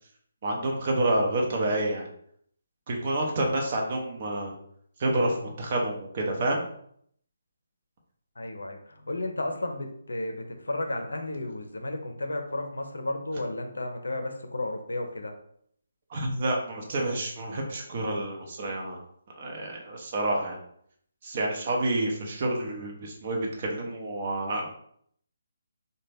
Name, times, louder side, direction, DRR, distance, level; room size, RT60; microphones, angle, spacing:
voice 1, 0.4-2.1 2.9-4.5 5.0-6.6 16.1-19.0 19.4-20.6 21.2-24.7, right 1 dB, 40° right, 0 dB, 0.8 m, -28 dB
voice 2, 8.4-15.3, left 2 dB, 70° left, 5 dB, 0.5 m, -33 dB
3.9 x 2.2 x 3.3 m, 0.67 s
figure-of-eight pair, 145°, 0 cm